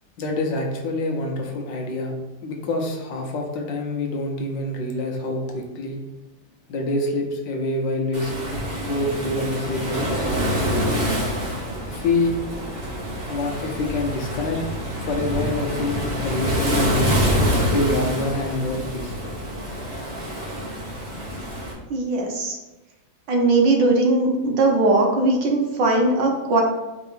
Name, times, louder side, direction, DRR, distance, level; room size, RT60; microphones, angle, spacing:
voice 1, 0.2-2.2 2.4-6.0 6.7-8.3 8.7-11.1 11.9-12.4 13.3-14.6 15.0-17.0 17.7-19.3, left 2 dB, 70° left, 2 dB, 1.5 m, -26 dB
Waves surf, 8.1-21.7, equal, 35° right, 1.3 m, -26 dB
voice 2, 21.9-22.6 23.3-26.6, right 2 dB, 65° right, 1 dB, 1.6 m, -19 dB
4.8 x 3.6 x 5.6 m, 1.1 s
omnidirectional pair, 2.2 m